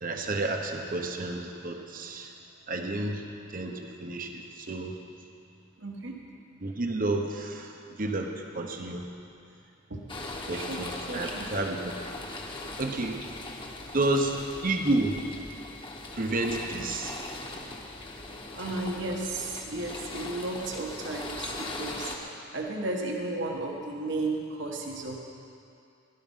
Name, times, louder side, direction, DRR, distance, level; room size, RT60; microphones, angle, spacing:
voice 1, 0.0-2.3 2.7-3.2 3.5-4.9 6.6-7.7 8.0-9.1 10.5-12.0 12.8-13.2 13.9-14.4 14.6-15.2 16.1-17.1, right 2 dB, 45° right, 3 dB, 1.1 m, -30 dB
voice 2, 5.8-6.1 9.9-10.1 10.5-11.5 18.5-25.2, right 2 dB, 65° right, 0 dB, 1.5 m, -34 dB
sound 1, 10.1-22.1, left 2 dB, 25° left, 1.3 m, -40 dB
17.5 x 11.5 x 5.6 m, 2.5 s
head